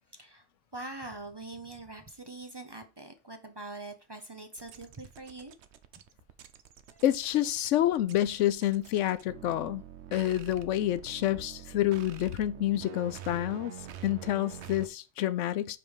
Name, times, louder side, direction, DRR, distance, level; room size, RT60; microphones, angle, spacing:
voice 1, 0.1-0.4 0.7-5.5 6.9-7.0, right 2 dB, 25° right, 0.7 m, -43 dB
sound 1, 4.6-14.9, right 9 dB, 70° right, 1.0 m, -46 dB
voice 2, 7.0-9.8 10.1-13.7 14.0-15.8, left 13 dB, 90° left, 0.9 m, -28 dB
5.3 x 4.9 x 4.8 m
omnidirectional pair, 1.2 m